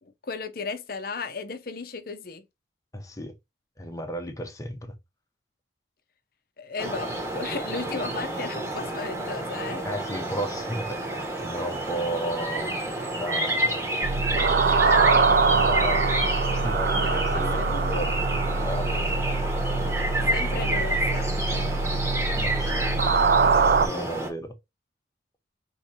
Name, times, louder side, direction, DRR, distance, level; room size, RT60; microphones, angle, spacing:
voice 1, 0.0-2.4 6.6-9.8 14.6-15.4 16.8-18.0 20.3-21.7, left 4 dB, 50° left, 0.6 m, -35 dB
voice 2, 2.9-3.3 3.8-4.9 9.8-12.7 13.1-14.1 15.5-16.2 16.6-18.1 18.6-18.9 22.3-22.9 23.8-24.5, equal, 15° left, 0.8 m, -34 dB
sound 1, 6.8-24.3, right 1 dB, 15° right, 1.2 m, -29 dB
sound 2, 14.0-23.9, right 4 dB, 55° right, 0.4 m, -24 dB
5.0 x 3.1 x 2.8 m
head